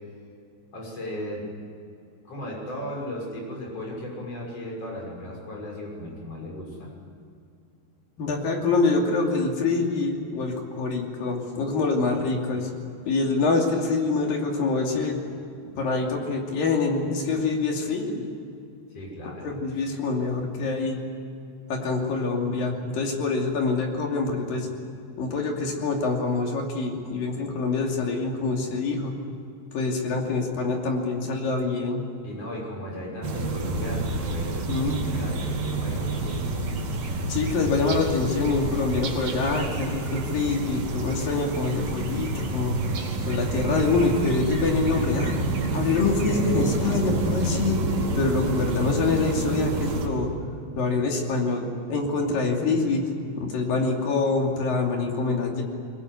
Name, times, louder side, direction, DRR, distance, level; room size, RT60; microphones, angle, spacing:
voice 1, 0.7-1.5 2.3-6.9 18.9-19.5 32.2-36.5, left 1 dB, 30° left, -2 dB, 7.1 m, -36 dB
voice 2, 8.2-12.7 13.0-15.2 15.8-18.3 19.4-21.0 21.7-24.7 25.2-29.1 29.7-32.0 34.7-35.0 37.3-42.8 43.2-45.4 45.7-47.8 48.2-50.3 50.8-53.0 53.4-55.6, left 3 dB, 50° left, 1 dB, 4.2 m, -25 dB
sound 1, 33.2-50.1, right 2 dB, 50° right, 3.9 m, -28 dB
22.0 x 21.5 x 9.6 m, 2.6 s
omnidirectional pair, 5.4 m